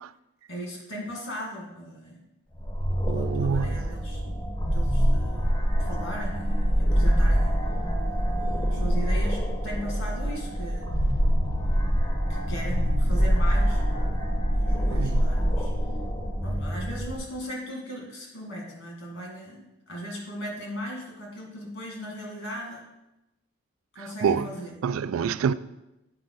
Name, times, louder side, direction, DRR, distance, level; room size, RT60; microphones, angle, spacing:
voice 1, 0.5-2.3 3.1-5.5 5.8-7.6 8.4-11.1 12.3-14.2 14.5-15.7 16.4-22.8 23.9-24.7, equal, 65° left, 2.2 m, -38 dB
sound 1, 2.6-17.2, equal, 20° left, 0.7 m, -25 dB
voice 2, 3.1-3.9 14.9-15.4 24.2-24.5 24.8-25.5, right 6 dB, 80° right, 0.3 m, -27 dB
8.8 x 4.9 x 4.0 m
head